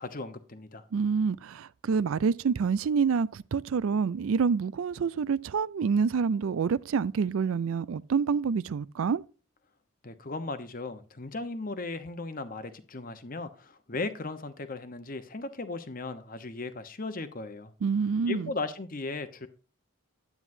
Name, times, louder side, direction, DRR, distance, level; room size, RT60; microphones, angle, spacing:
voice 1, 0.0-0.8 10.0-17.7 18.3-19.5, left 3 dB, 40° left, 1.0 m, -37 dB
voice 2, 0.9-9.2 17.8-18.5, right 5 dB, 75° right, 0.4 m, -27 dB
9.7 x 9.1 x 2.7 m
head